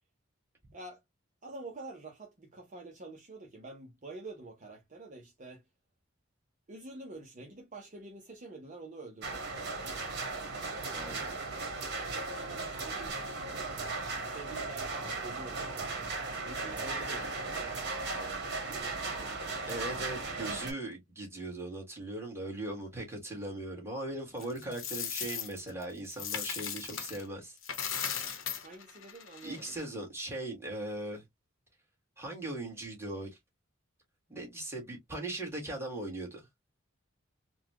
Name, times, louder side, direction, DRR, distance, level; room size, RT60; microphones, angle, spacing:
voice 1, 1.4-5.6 6.7-9.6 12.0-13.4 14.1-16.0 16.4-17.7 18.1-19.7 24.3-24.5 28.5-29.8, right 2 dB, 40° right, 0.8 m, -48 dB
sound 1, 9.2-20.7, right 3 dB, 55° right, 1.4 m, -37 dB
voice 2, 10.9-11.3 19.7-27.6 29.4-31.2 32.2-33.3 34.3-36.5, right 2 dB, 10° right, 1.7 m, -39 dB
Coin (dropping), 24.4-27.2 27.6-29.8, left 8 dB, 75° left, 1.0 m, -38 dB
4.0 x 2.3 x 2.8 m
head